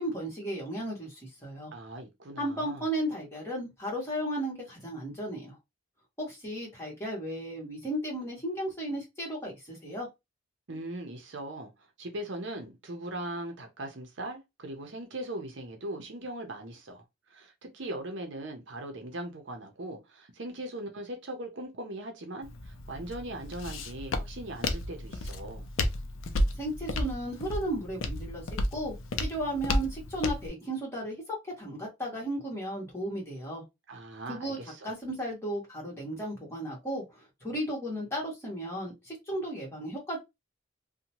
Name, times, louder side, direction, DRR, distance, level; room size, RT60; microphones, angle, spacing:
voice 1, 0.0-1.7 2.4-5.6 6.2-10.1 26.5-28.4 28.7-33.6 34.3-34.6 34.8-40.2, right 1 dB, 15° left, 1.3 m, -35 dB
voice 2, 1.7-2.8 10.7-17.0 17.3-25.7 33.9-34.9, right 1 dB, 65° right, 0.7 m, -40 dB
Walk footsteps, 22.4-30.5, left 1 dB, 80° left, 0.5 m, -33 dB
2.7 x 2.2 x 2.9 m
head